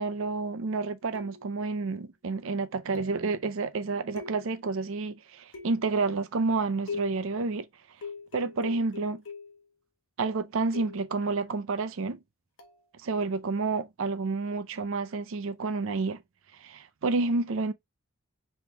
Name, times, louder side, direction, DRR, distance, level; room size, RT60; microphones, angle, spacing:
voice 1, 0.0-7.7 8.3-9.2 10.2-12.2 13.0-16.2 16.6-17.7, right 3 dB, 60° right, 0.5 m, -29 dB
sound 1, 1.1-1.7 2.9-3.3 4.2-4.8 5.5-6.0 6.9-7.4 8.0-9.7 10.7-11.2 12.6-12.8, left 5 dB, 60° left, 0.9 m, -41 dB
3.5 x 2.9 x 3.3 m
head